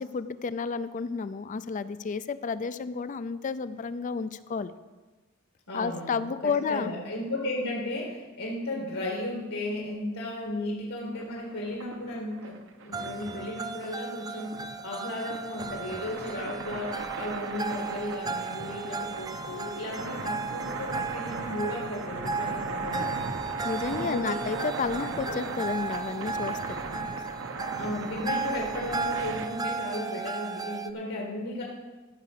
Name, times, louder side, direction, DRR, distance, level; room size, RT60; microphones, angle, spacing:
voice 1, 0.0-4.7 5.7-6.9 23.6-26.8, left 5 dB, 40° left, 13 dB, 0.4 m, -31 dB
voice 2, 5.7-23.2 23.9-24.2 25.0-25.3 27.7-31.6, left 1 dB, 85° left, -2 dB, 2.0 m, -35 dB
sound 1, 11.1-29.5, right 3 dB, 65° right, 1.0 m, -38 dB
sound 2, 12.9-30.9, right 4 dB, 20° right, 0.5 m, -35 dB
14.0 x 5.9 x 6.6 m, 1.3 s
head